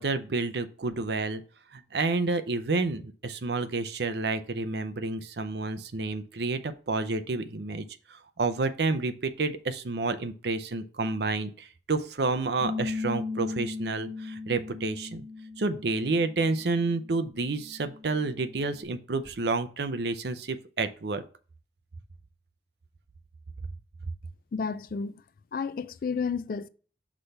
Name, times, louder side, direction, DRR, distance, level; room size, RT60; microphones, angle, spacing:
voice 1, 0.0-1.4 1.7-15.2 15.6-21.2, right 3 dB, 65° right, 0.6 m, -30 dB
Bass guitar, 12.6-18.8, left 4 dB, 80° right, 2.9 m, -38 dB
voice 2, 24.5-25.1 25.5-26.7, left 5 dB, 50° left, 0.3 m, -31 dB
6.1 x 3.3 x 5.5 m
head